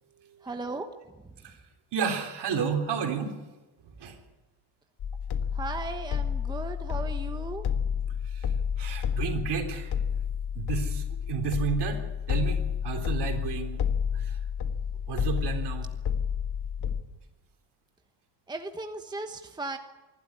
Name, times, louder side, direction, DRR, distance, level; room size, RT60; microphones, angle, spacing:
voice 1, 0.4-0.9 5.5-7.6 18.5-19.8, right 3 dB, 10° right, 5 dB, 1.1 m, -36 dB
voice 2, 1.9-3.3 4.0-4.2 8.3-8.5 8.8-9.9 10.6-12.0 12.3-13.8 14.1-14.4 15.1-15.9, right 6 dB, 60° right, 3 dB, 3.8 m, -31 dB
sound 1, 5.0-17.0, left 7 dB, 55° left, 1.6 m, -30 dB
25.0 x 12.0 x 9.7 m, 1.1 s
cardioid pair, 135°, 45 cm